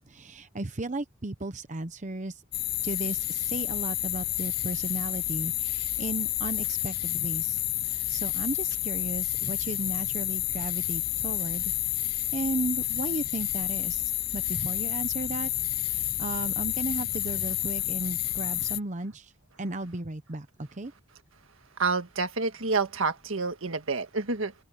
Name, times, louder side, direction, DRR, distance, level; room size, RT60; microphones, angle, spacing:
voice 1, 0.1-2.4 2.8-7.6 7.9-15.5 15.9-19.3 19.6-20.9, right 2 dB, 35° right, 0.9 m, -35 dB
sound 1, 2.5-18.8, left 15 dB, 50° left, 0.6 m, -30 dB
voice 2, 21.8-24.5, right 4 dB, 75° right, 1.7 m, -28 dB
head